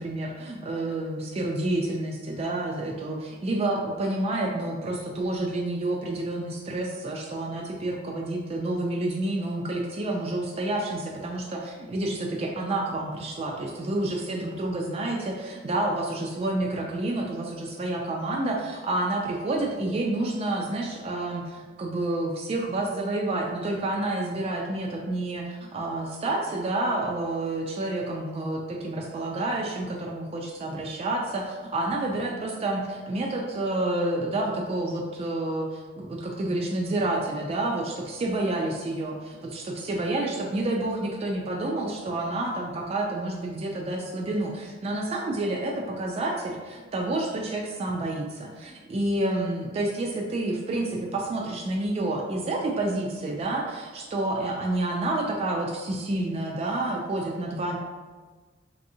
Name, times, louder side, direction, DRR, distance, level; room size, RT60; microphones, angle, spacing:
voice 1, 0.0-57.8, right 2 dB, 35° right, 0 dB, 0.3 m, -29 dB
3.3 x 2.7 x 2.6 m, 1.4 s
head